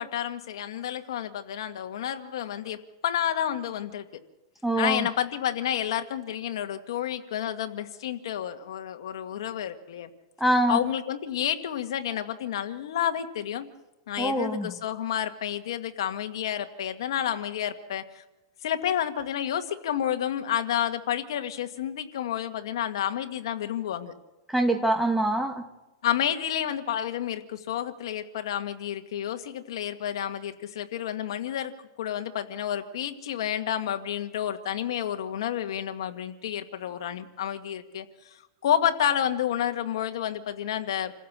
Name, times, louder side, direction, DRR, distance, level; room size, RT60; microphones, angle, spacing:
voice 1, 0.0-4.2 4.8-10.1 10.7-13.7 14.1-18.2 18.6-24.2 26.0-41.1, left 10 dB, 70° left, 7 dB, 1.8 m, -30 dB
voice 2, 4.6-5.1 10.4-10.8 14.2-14.7 24.5-25.7, right 1 dB, ahead, 6 dB, 1.5 m, -24 dB
27.5 x 15.5 x 7.5 m, 1.1 s
supercardioid pair, 150°, 3 cm